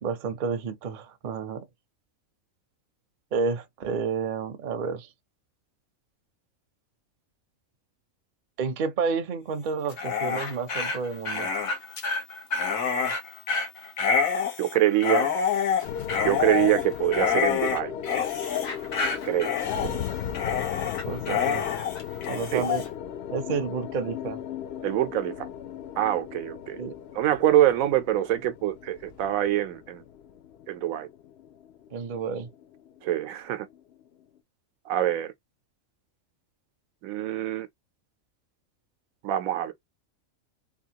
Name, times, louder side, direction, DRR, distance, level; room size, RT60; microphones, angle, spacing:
voice 1, 0.0-1.6 3.3-5.1 8.6-11.5 19.8-20.0 21.0-21.7 22.3-22.8 23.3-24.4 26.8-26.9 31.9-32.5, right 5 dB, 45° right, 0.7 m, -30 dB
Dog, 9.9-22.9, left 6 dB, 85° left, 1.4 m, -27 dB
voice 2, 14.6-15.3 16.2-17.9 19.2-19.5 22.5-22.6 24.8-25.5 26.0-26.8 27.1-30.0 30.7-31.1 33.0-33.7 34.8-35.3 37.0-37.7 39.2-39.7, right 13 dB, 85° right, 1.0 m, -25 dB
sound 1, 15.8-34.2, left 8 dB, 60° left, 0.7 m, -37 dB
3.5 x 2.3 x 2.8 m
omnidirectional pair, 1.4 m